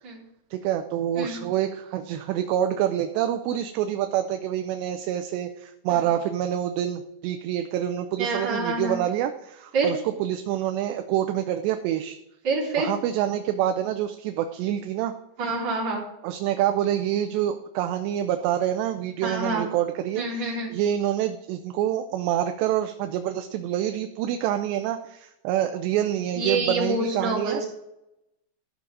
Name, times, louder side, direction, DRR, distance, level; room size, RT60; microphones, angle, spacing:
voice 1, 0.5-12.2 12.8-15.1 16.2-27.6, right 11 dB, 80° right, 8 dB, 2.7 m, -27 dB
voice 2, 8.2-9.0 9.7-9.9 12.4-12.9 15.4-16.0 19.2-19.7 20.1-20.7 26.4-27.7, right 3 dB, 40° right, -6 dB, 4.6 m, -27 dB
14.0 x 6.3 x 5.2 m, 0.86 s
omnidirectional pair, 5.2 m